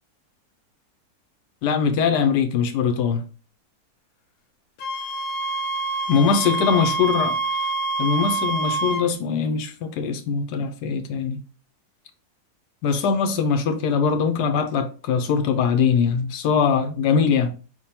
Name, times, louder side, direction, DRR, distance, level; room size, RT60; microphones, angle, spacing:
voice 1, 1.6-3.2 6.1-7.3 8.0-11.4 12.8-17.5, left 6 dB, 90° left, 1.2 m, -22 dB
Wind instrument woodwind instrument, 4.8-9.1, right 3 dB, 70° left, 1.1 m, -26 dB
5.0 x 3.6 x 2.8 m
omnidirectional pair, 1.7 m